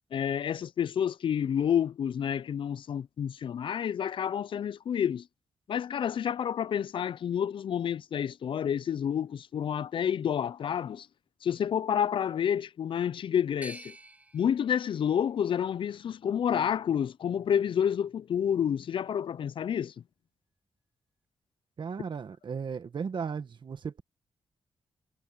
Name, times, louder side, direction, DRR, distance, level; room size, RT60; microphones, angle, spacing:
voice 1, 0.1-5.3 5.7-11.1 11.4-14.0 14.3-19.9, left 8 dB, 65° left, 0.4 m, -29 dB
sound 1, 13.6-16.5 17.1-17.9, right 1 dB, 15° right, 7.3 m, -52 dB
voice 2, 21.8-24.0, right 6 dB, 55° right, 1.6 m, -36 dB
cardioid pair, 85°, 9 cm